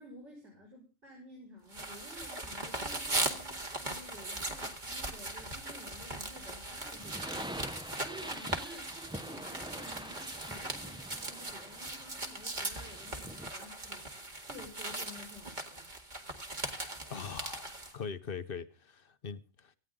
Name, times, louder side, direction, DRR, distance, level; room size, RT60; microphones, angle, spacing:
voice 1, 0.0-7.4 7.6-14.1 14.4-15.9, equal, 55° right, 6.3 m, -52 dB
sound 1, 1.7-17.9, right 2 dB, 35° right, 2.1 m, -39 dB
sound 2, 6.9-13.6, right 1 dB, 5° right, 0.5 m, -45 dB
voice 2, 17.1-19.8, left 6 dB, 50° left, 1.0 m, -42 dB
19.0 x 15.5 x 3.8 m
omnidirectional pair, 1.4 m